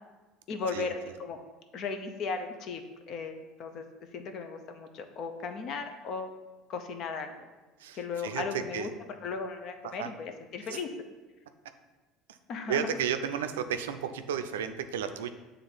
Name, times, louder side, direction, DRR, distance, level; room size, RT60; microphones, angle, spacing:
voice 1, 0.5-1.4 1.7-3.8 4.1-6.3 6.7-7.5 7.9-8.9 9.2-10.9 12.5-12.9, left 4 dB, 55° left, 7 dB, 0.7 m, -36 dB
voice 2, 7.8-8.4 8.7-8.9 10.0-10.1 10.7-10.8 12.3-12.4 12.7-15.3, right 8 dB, 85° right, 9 dB, 0.4 m, -33 dB
7.1 x 3.4 x 3.9 m, 1.2 s
hypercardioid pair, 75°, 0 cm